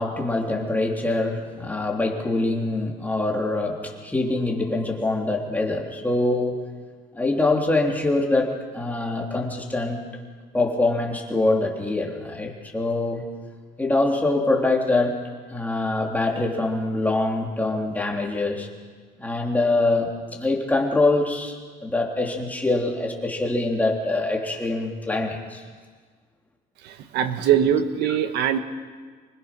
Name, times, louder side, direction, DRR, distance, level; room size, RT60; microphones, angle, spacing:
voice 1, 0.0-6.6 7.1-10.0 10.5-13.3 13.8-15.2 15.5-18.7 19.2-21.6 21.8-25.6, left 2 dB, 10° left, 0 dB, 3.5 m, -24 dB
voice 2, 26.8-28.6, right 9 dB, 80° right, 9 dB, 1.6 m, -22 dB
25.5 x 20.5 x 6.2 m, 1.5 s
cardioid pair, 110°, 17 cm